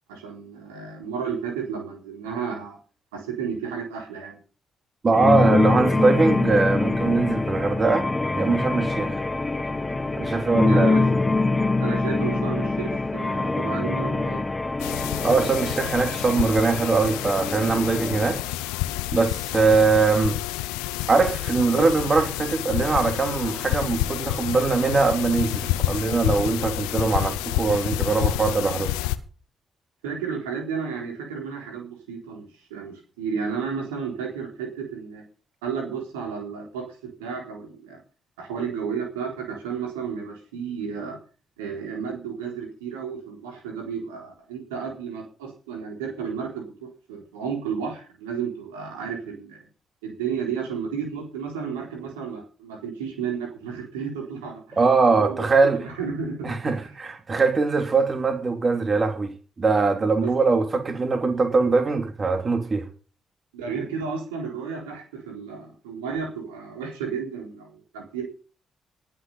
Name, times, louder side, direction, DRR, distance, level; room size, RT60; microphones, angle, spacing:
voice 1, 0.1-2.8 3.1-4.4 10.6-11.1 11.8-14.4 21.7-21.9 30.0-35.2 35.6-38.0 38.4-41.2 41.6-49.7 50.0-54.8 55.2-56.9 60.2-60.3 63.5-68.2, right 6 dB, 85° right, 3.9 m, -32 dB
voice 2, 5.0-8.1 8.3-9.2 10.2-10.9 15.2-18.4 19.1-20.4 21.1-28.9 54.8-55.8 56.4-59.3 59.6-62.8, right 4 dB, 40° right, 3.2 m, -22 dB
sound 1, 5.1-18.4, left 3 dB, 25° left, 1.4 m, -24 dB
sound 2, 14.8-29.2, left 16 dB, 80° left, 0.8 m, -29 dB
19.5 x 7.9 x 5.6 m
hypercardioid pair, 45°, 0 cm